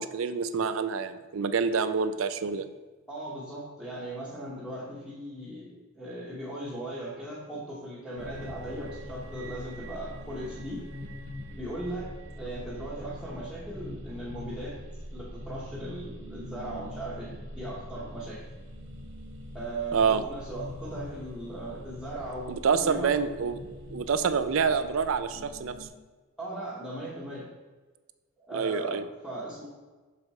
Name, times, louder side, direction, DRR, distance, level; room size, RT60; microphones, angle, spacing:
voice 1, 0.0-2.7 19.9-20.2 22.5-23.6 23.9-25.8 28.5-29.0, right 5 dB, 70° right, 11 dB, 0.4 m, -27 dB
voice 2, 3.1-10.9 11.5-18.5 19.5-23.2 26.4-27.5 28.4-29.7, right 1 dB, 5° left, -8 dB, 0.9 m, -38 dB
sound 1, 8.2-25.9, left 1 dB, 55° right, 1.0 m, -43 dB
6.6 x 4.1 x 4.7 m, 1.3 s
head